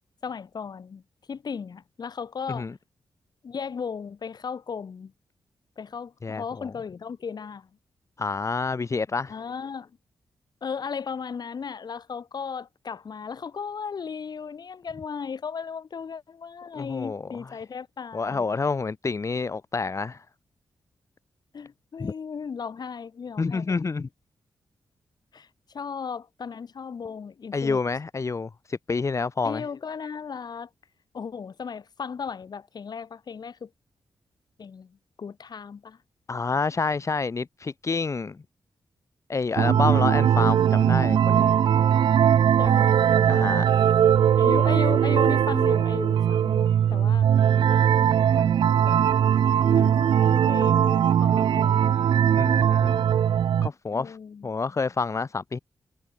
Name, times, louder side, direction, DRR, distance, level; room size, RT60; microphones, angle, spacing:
voice 1, 0.2-1.0 1.3-2.7 3.4-5.1 5.8-7.7 9.3-10.0 10.6-18.6 21.5-23.8 25.3-27.8 29.4-30.7 31.1-33.7 34.6-36.0 42.6-43.5 44.4-47.3 48.4-48.6 48.9-52.1 53.9-54.5, left 6 dB, 60° left, 7.3 m, -36 dB
voice 2, 6.2-6.7 8.2-9.3 16.8-17.2 18.1-20.2 22.0-22.1 23.4-24.1 27.5-29.6 36.3-38.4 39.3-41.5 43.3-43.7 52.3-53.0 53.6-54.2 54.4-55.6, left 4 dB, 40° left, 1.6 m, -28 dB
sound 1, 39.6-53.7, right 9 dB, 90° right, 2.1 m, -20 dB
cardioid pair, 80°, 8 cm